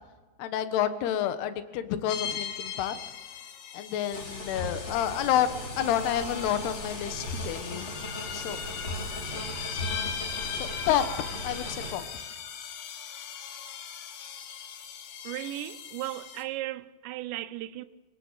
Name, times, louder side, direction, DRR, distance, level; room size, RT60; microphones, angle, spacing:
voice 1, 0.4-3.0 3.7-5.5 5.8-7.9 8.3-8.6 9.3-9.4 10.5-11.0 11.4-12.0, left 10 dB, 70° left, 3.3 m, -29 dB
sound 1, 2.1-16.4, left 8 dB, 90° left, 4.2 m, -39 dB
sound 2, 4.1-11.9, equal, 30° left, 4.5 m, -37 dB
voice 2, 15.2-17.9, right 15 dB, 85° right, 3.1 m, -36 dB
28.0 x 18.0 x 7.5 m
omnidirectional pair, 5.0 m